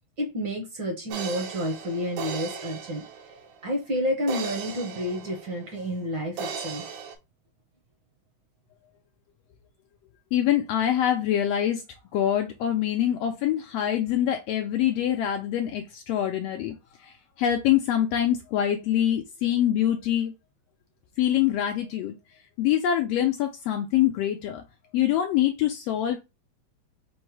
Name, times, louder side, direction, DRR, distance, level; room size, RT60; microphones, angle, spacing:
voice 1, 0.2-3.0 3.6-6.9, equal, 60° right, 1.3 m, -30 dB
sound 1, 1.1-3.7 4.3-6.0 6.4-7.2, right 6 dB, 75° right, 2.1 m, -37 dB
voice 2, 10.3-11.8 12.1-20.3 21.2-22.1 22.6-24.6 24.9-26.2, left 11 dB, 80° left, 1.5 m, -25 dB
5.3 x 2.1 x 4.6 m
omnidirectional pair, 3.3 m